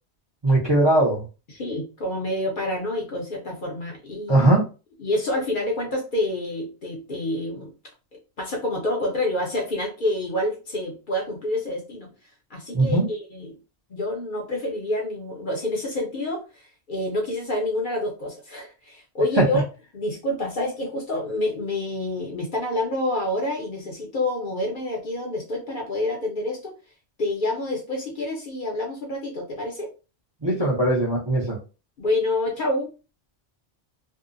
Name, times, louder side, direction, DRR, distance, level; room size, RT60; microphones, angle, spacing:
voice 1, 0.4-1.2 4.3-4.6 12.7-13.1 19.4-19.5 30.4-31.6, right 2 dB, 30° right, -4 dB, 0.5 m, -19 dB
voice 2, 1.5-4.5 5.0-7.7 8.4-12.1 12.5-13.6 13.9-19.6 19.9-26.8 27.2-29.9 32.0-32.9, left 1 dB, 55° left, 0 dB, 0.7 m, -28 dB
2.6 x 2.0 x 2.4 m, 0.32 s
omnidirectional pair, 1.2 m